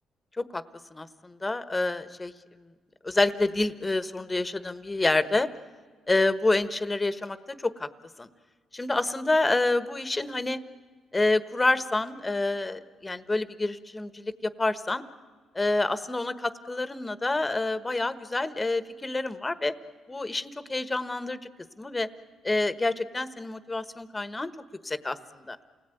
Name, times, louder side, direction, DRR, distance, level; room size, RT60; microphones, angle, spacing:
voice 1, 0.9-2.3 3.0-5.5 6.1-7.9 8.2-8.3 8.7-10.6 11.1-15.0 15.5-19.7 20.1-21.4 21.8-22.1 22.4-24.5 24.8-25.6, left 2 dB, 20° left, 12 dB, 1.3 m, -28 dB
28.5 x 19.0 x 9.3 m, 1.5 s
cardioid pair, 85°, 0 cm